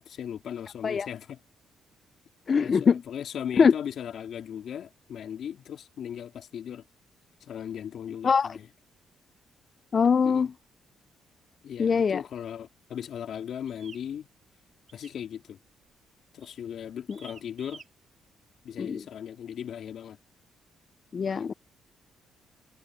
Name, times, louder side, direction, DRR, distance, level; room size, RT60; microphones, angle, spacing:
voice 1, 0.0-1.4 2.6-6.8 7.4-8.7 10.2-10.5 11.6-14.3 14.9-15.6 16.3-17.8 18.6-20.2 21.4-21.5, left 9 dB, 65° left, 3.1 m, -38 dB
voice 2, 2.5-3.0 3.6-3.7 8.2-8.6 9.9-10.5 11.8-12.2 17.1-17.2 18.8-19.0 21.1-21.5, left 6 dB, 45° left, 0.4 m, -22 dB
sound 1, 13.7-14.1 14.9-15.2 15.5-15.9 16.4-16.6 17.1-17.9, right 5 dB, 40° right, 3.5 m, -50 dB
cardioid pair, 90°, 0 cm